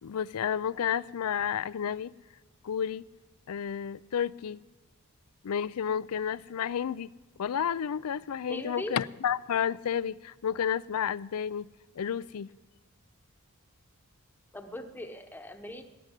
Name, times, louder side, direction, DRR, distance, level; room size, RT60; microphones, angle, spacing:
voice 1, 0.0-2.1 2.6-3.0 3.5-4.6 5.4-7.1 7.4-11.7 12.0-12.5, left 8 dB, 70° left, 20 dB, 0.4 m, -31 dB
voice 2, 8.5-9.0 14.5-15.8, left 1 dB, 10° left, 6 dB, 0.9 m, -39 dB
12.5 x 10.0 x 9.9 m, 1.2 s
head